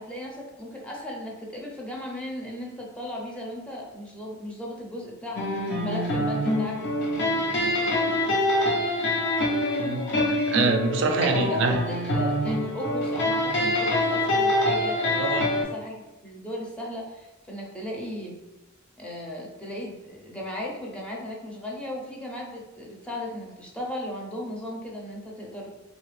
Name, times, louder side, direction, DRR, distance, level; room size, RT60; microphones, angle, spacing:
voice 1, 0.0-6.8 7.2-8.2 11.0-18.4 19.0-25.7, left 1 dB, 5° left, -3 dB, 0.6 m, -36 dB
sound 1, 5.4-15.6, left 1 dB, 60° left, 0.8 m, -25 dB
voice 2, 9.8-11.8 15.1-15.5, right 3 dB, 65° right, 4 dB, 0.4 m, -25 dB
3.3 x 2.4 x 3.2 m, 0.97 s
head